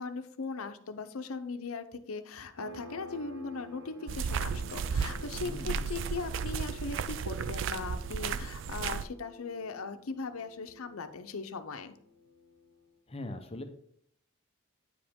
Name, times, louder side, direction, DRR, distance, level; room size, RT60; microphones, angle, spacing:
voice 1, 0.0-11.9, left 4 dB, 85° left, 9 dB, 0.7 m, -39 dB
sound 1, 2.6-12.9, left 1 dB, 80° right, 1.0 m, -51 dB
sound 2, 4.1-9.0, right 6 dB, 60° right, 0.3 m, -34 dB
voice 2, 5.4-6.0 13.1-13.6, left 1 dB, 30° left, 7 dB, 0.7 m, -41 dB
9.3 x 5.0 x 3.6 m, 0.68 s
head